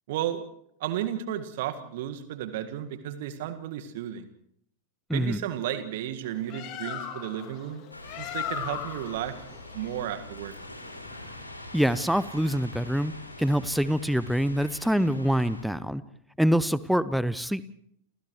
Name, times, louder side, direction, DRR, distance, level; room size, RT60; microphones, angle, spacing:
voice 1, 0.1-0.4 0.8-4.3 5.1-7.8 8.2-9.3 9.7-10.5, right 11 dB, 55° right, 8 dB, 1.8 m, -33 dB
voice 2, 5.1-5.4 11.7-13.1 13.4-16.0 16.4-17.6, equal, ahead, 17 dB, 0.8 m, -25 dB
Bird, 6.2-11.4, left 10 dB, 40° left, 2.6 m, -38 dB
sound 1, 7.9-15.6, left 1 dB, 85° left, 3.6 m, -44 dB
30.0 x 28.0 x 3.2 m, 0.70 s
figure-of-eight pair, 90°, 0 cm